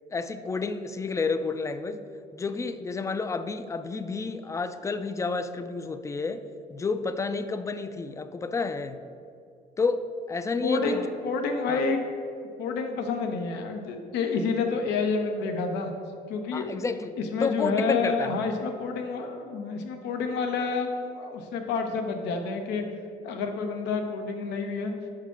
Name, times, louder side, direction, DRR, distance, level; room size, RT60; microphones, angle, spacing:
voice 1, 0.1-2.1 2.3-9.0 9.8-11.1 11.7-11.8 16.5-18.5, left 4 dB, 20° left, 10 dB, 0.4 m, -30 dB
voice 2, 10.6-12.0 12.6-15.9 16.3-16.8 17.3-22.9 23.2-24.9, left 4 dB, 90° left, 5 dB, 0.8 m, -29 dB
5.6 x 4.9 x 5.8 m, 2.4 s
cardioid pair, 110°, 17 cm